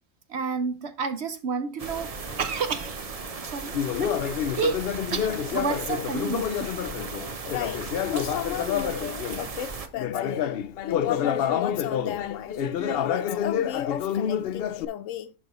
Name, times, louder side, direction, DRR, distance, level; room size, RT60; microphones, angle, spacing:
voice 1, 0.3-2.1 2.4-3.0 3.5-3.7 4.0-6.8, right 5 dB, 65° right, 0.9 m, -30 dB
sound 1, 1.8-9.9, right 4 dB, 35° right, 0.8 m, -36 dB
Conversation, 3.7-9.5 9.9-14.8, left 9 dB, 60° left, 0.7 m, -28 dB
voice 2, 7.4-10.4 10.8-12.6 13.1-15.3, left 11 dB, 90° left, 1.0 m, -34 dB
11.0 x 5.1 x 3.0 m
omnidirectional pair, 1.3 m